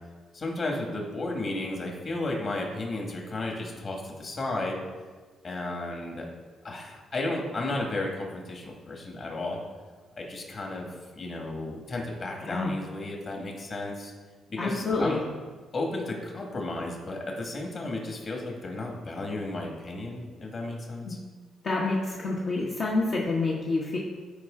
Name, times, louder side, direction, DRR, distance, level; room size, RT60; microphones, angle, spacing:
voice 1, 0.3-4.8 5.4-6.3 6.6-9.6 10.2-10.9 11.2-14.1 14.5-15.2 15.7-21.2, left 2 dB, 45° left, 0 dB, 1.9 m, -33 dB
voice 2, 12.4-12.7 14.6-15.2 21.0-21.1 21.6-24.0, left 3 dB, 60° left, -5 dB, 1.3 m, -28 dB
12.5 x 4.8 x 3.8 m, 1.4 s
cardioid pair, 90°, 0 cm